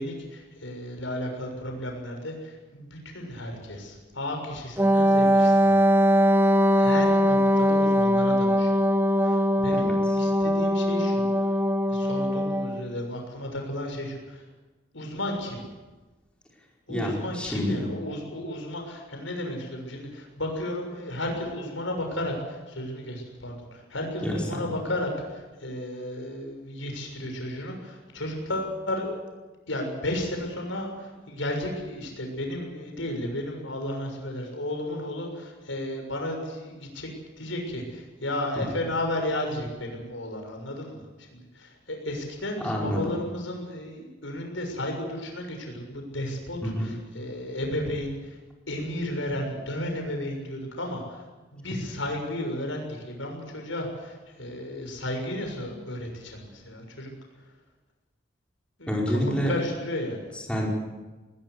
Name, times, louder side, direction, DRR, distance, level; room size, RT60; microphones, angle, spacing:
voice 1, 0.0-5.7 6.6-8.8 9.2-11.5 11.9-14.4 14.9-15.6 16.9-29.1 29.7-37.1 37.4-48.4 48.7-51.2 51.5-57.1 58.8-60.2, left 1 dB, 90° left, 2 dB, 6.8 m, -33 dB
Wind instrument woodwind instrument, 4.8-12.9, equal, 10° right, 1.0 m, -21 dB
voice 2, 16.9-17.8 24.2-24.6 38.5-38.6 42.6-43.1 46.6-46.9 58.9-59.5 60.3-60.7, equal, 5° left, -3 dB, 4.9 m, -28 dB
20.5 x 20.0 x 8.3 m, 1.2 s
head